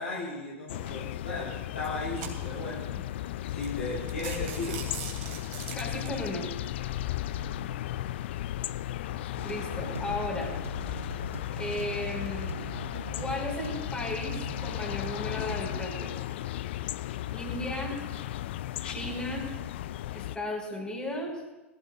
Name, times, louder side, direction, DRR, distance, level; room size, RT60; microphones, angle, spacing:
voice 1, 0.0-3.0 3.5-4.9 7.3-7.6 17.1-17.4, left 2 dB, 75° left, -6 dB, 6.3 m, -36 dB
sound 1, 0.7-20.4, left 13 dB, 60° left, 0.4 m, -35 dB
sound 2, 0.9-1.1 1.7-2.7 3.3-3.4 3.6-3.8 4.1-6.3, right 7 dB, 50° right, 2.9 m, -41 dB
voice 2, 5.7-6.5 9.4-10.8 11.6-12.5 13.1-16.1 17.3-17.9 18.8-19.5 20.1-21.4, left 1 dB, 15° left, -1 dB, 5.1 m, -35 dB
sound 3, 9.4-15.8, right 2 dB, 85° right, 1.0 m, -41 dB
22.5 x 15.5 x 2.5 m, 1.1 s
figure-of-eight pair, 90°, 7 cm